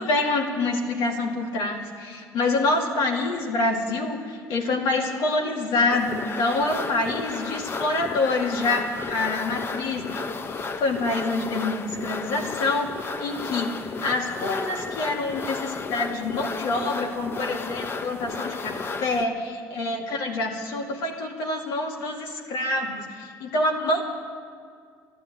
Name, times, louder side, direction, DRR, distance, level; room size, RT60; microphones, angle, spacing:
voice 1, 0.0-24.0, left 2 dB, 75° left, 0 dB, 2.3 m, -26 dB
sound 1, 5.9-19.3, left 4 dB, 35° left, 0.8 m, -33 dB
12.0 x 11.5 x 8.8 m, 2.1 s
supercardioid pair, 85°, 7 cm